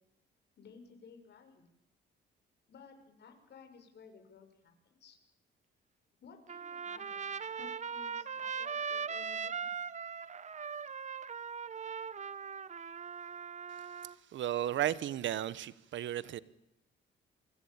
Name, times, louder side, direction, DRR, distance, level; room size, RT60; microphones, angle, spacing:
voice 1, 0.6-1.7 2.7-5.2 6.2-7.3 7.5-9.9, left 5 dB, 60° left, 6.5 m, -56 dB
Trumpet, 6.5-14.1, right 6 dB, 35° right, 1.1 m, -40 dB
voice 2, 14.3-16.4, right 12 dB, 70° right, 1.2 m, -34 dB
28.0 x 24.5 x 8.8 m
cardioid pair, 90°, 20 cm